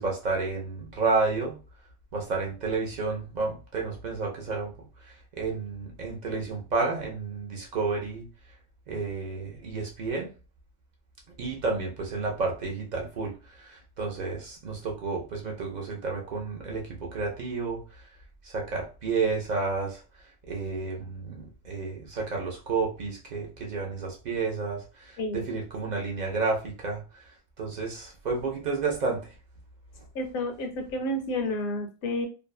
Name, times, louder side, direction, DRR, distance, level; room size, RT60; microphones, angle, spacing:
voice 1, 0.0-1.6 2.1-4.7 5.0-8.3 8.9-10.3 11.4-18.0 18.4-20.0 20.5-27.3 27.6-29.3, right 4 dB, 60° right, 0.4 m, -31 dB
voice 2, 30.1-32.3, left 1 dB, 55° left, 0.7 m, -30 dB
2.6 x 2.1 x 2.3 m
omnidirectional pair, 1.2 m